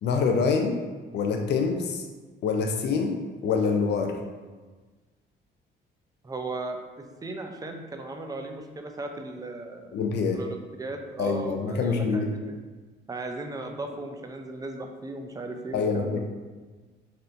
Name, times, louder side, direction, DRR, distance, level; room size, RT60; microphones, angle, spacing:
voice 1, 0.0-0.8 1.1-2.1 2.4-4.2 9.9-10.4 11.2-12.3 15.7-16.2, left 5 dB, 60° left, 3 dB, 0.4 m, -25 dB
voice 2, 6.2-9.9 10.3-12.6 13.1-16.2, right 2 dB, 20° right, 4 dB, 0.4 m, -37 dB
4.2 x 2.6 x 2.6 m, 1.3 s
cardioid pair, 90°, 20 cm